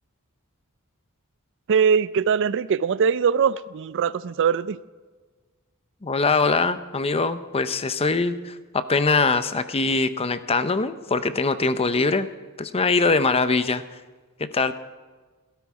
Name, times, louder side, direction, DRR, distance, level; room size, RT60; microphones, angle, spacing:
voice 1, 1.7-4.8, right 6 dB, 55° right, 17 dB, 0.4 m, -21 dB
voice 2, 6.0-12.3 12.6-13.8 14.5-14.7, left 3 dB, 25° left, 12 dB, 0.6 m, -22 dB
16.5 x 13.0 x 4.8 m, 1.4 s
head